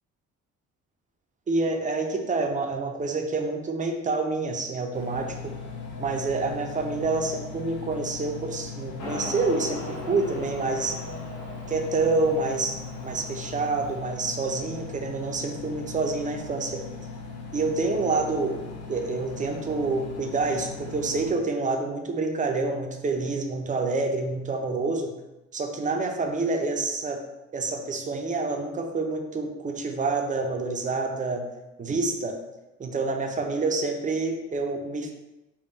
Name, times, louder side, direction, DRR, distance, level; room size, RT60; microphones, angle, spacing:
voice 1, 1.5-5.5 6.0-11.0 11.7-16.8 17.5-18.5 18.9-25.1 25.5-27.2 27.5-31.4 31.8-32.4 32.8-35.1, right 3 dB, 25° right, 4 dB, 0.5 m, -27 dB
Engine, 4.9-21.3, left 4 dB, 55° left, 1.1 m, -39 dB
Motorcycle, 9.0-14.0, left 1 dB, 90° left, 0.8 m, -39 dB
3.5 x 2.3 x 3.9 m, 1.0 s
cardioid pair, 90°, 30 cm